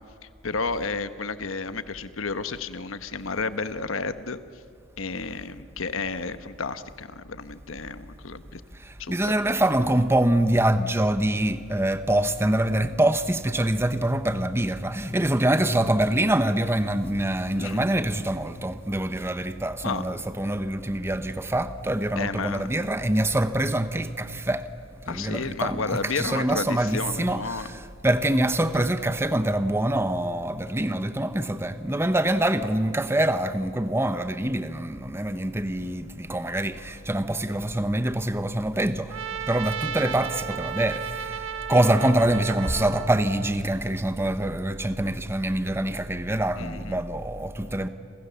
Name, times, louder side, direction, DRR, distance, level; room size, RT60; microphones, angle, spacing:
voice 1, 0.2-4.6 5.0-8.6 9.0-9.3 17.5-17.8 19.8-20.1 22.2-22.7 25.1-27.7 28.8-28.9 41.8-42.1 46.6-47.0, left 4 dB, 90° left, 1.1 m, -32 dB
voice 2, 9.1-24.6 25.1-39.1 39.5-47.9, right 1 dB, 10° right, 0.9 m, -25 dB
Trumpet, 39.1-43.5, right 8 dB, 75° right, 1.0 m, -34 dB
29.5 x 27.0 x 7.0 m
head